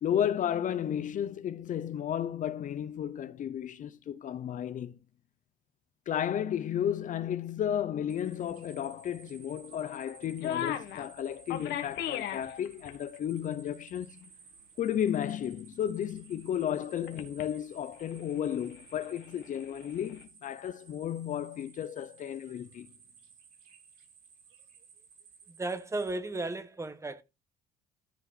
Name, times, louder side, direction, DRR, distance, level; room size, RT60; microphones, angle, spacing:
voice 1, 0.0-4.9 6.1-14.3 14.8-22.9, left 9 dB, 50° left, 0.7 m, -33 dB
sound 1, 8.1-26.1, right 6 dB, 55° right, 7.0 m, -57 dB
sound 2, 10.0-10.1 10.3-11.1 11.5-12.9 13.2-13.3 13.6-13.7 17.1-17.4 17.9-20.2, left 10 dB, 75° left, 1.9 m, -36 dB
voice 2, 25.5-27.2, right 2 dB, 15° right, 1.3 m, -35 dB
14.0 x 5.6 x 4.2 m
cardioid pair, 110°, 17 cm